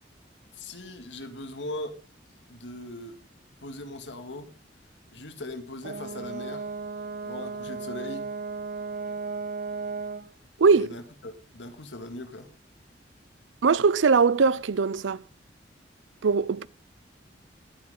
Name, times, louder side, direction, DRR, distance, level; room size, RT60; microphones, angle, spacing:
voice 1, 0.5-2.0 2.5-3.2 3.6-4.5 5.1-6.7 7.2-8.3 10.7-12.5, left 1 dB, 75° left, 2.1 m, -39 dB
Brass instrument, 5.8-10.3, right 4 dB, 50° right, 0.7 m, -35 dB
voice 2, 13.6-15.2 16.2-16.7, right 5 dB, 90° right, 0.5 m, -21 dB
18.5 x 9.6 x 3.8 m
head